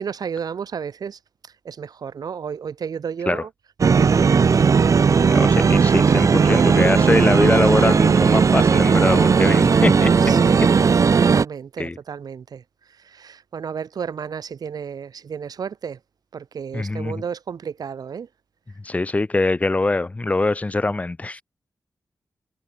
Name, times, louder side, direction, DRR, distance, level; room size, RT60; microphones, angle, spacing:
voice 1, 0.0-3.5 3.8-5.1 10.3-10.9 11.2-12.6 12.9-16.0 16.3-18.3, right 7 dB, 90° right, 3.5 m, -32 dB
sound 1, 3.8-11.4, right 5 dB, 55° right, 2.2 m, -16 dB
voice 2, 5.3-10.1 11.8-12.0 16.7-17.2 18.8-21.4, left 2 dB, 20° left, 1.9 m, -23 dB
wide cardioid pair, 160°, 6 cm